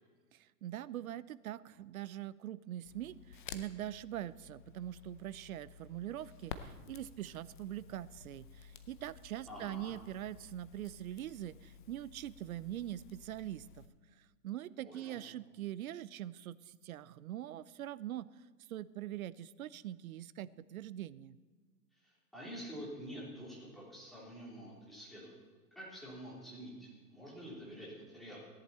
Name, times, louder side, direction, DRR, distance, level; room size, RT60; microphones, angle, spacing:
voice 1, 0.3-13.9 14.4-18.3 18.7-21.4, right 12 dB, 60° right, 19 dB, 0.5 m, -43 dB
Crackle, 2.8-13.9, left 7 dB, 30° left, 0.6 m, -53 dB
voice 2, 9.5-9.9 14.8-15.2 22.3-25.4 25.7-28.4, equal, ahead, -7 dB, 3.4 m, -47 dB
16.5 x 11.0 x 4.3 m, 1.5 s
hypercardioid pair, 155°, 49 cm